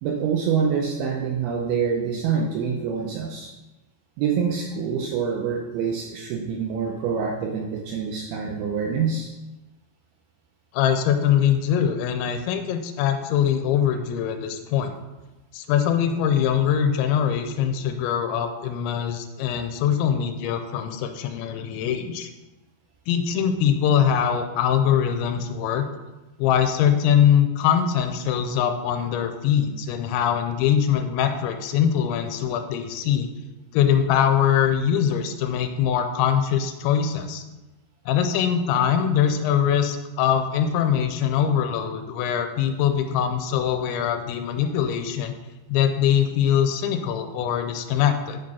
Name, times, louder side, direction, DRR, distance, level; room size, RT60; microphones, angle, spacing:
voice 1, 0.0-3.5 4.2-9.3, right 6 dB, 80° right, 0 dB, 2.3 m, -26 dB
voice 2, 10.7-14.9 15.5-22.3 23.1-25.9 26.4-33.3 33.7-37.4 38.1-45.3 45.7-48.4, left 9 dB, 85° left, 7 dB, 2.9 m, -22 dB
7.4 x 5.3 x 5.5 m, 1.1 s
omnidirectional pair, 5.3 m